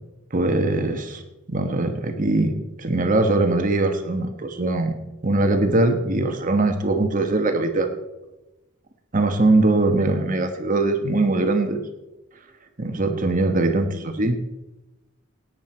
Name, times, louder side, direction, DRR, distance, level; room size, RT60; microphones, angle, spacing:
voice 1, 0.3-1.2 1.5-2.5 2.8-5.0 5.2-7.9 9.1-11.8 12.8-14.4, right 2 dB, 40° right, 6 dB, 1.2 m, -21 dB
17.0 x 9.4 x 4.4 m, 1.0 s
head